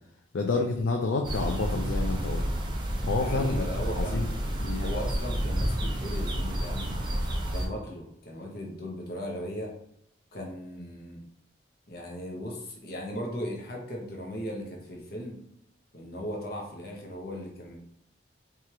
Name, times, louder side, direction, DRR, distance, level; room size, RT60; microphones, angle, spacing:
voice 1, 0.3-2.4 3.0-3.6 3.9-4.3 4.6-4.9, left 3 dB, 75° left, 2 dB, 0.4 m, -29 dB
sound 1, 1.2-7.7, equal, 25° right, 0.6 m, -30 dB
voice 2, 3.1-4.4 4.8-6.9 7.5-9.7 10.3-11.2 11.9-15.4 15.9-17.8, equal, 50° left, -1 dB, 0.8 m, -37 dB
4.7 x 2.4 x 2.9 m, 0.74 s
head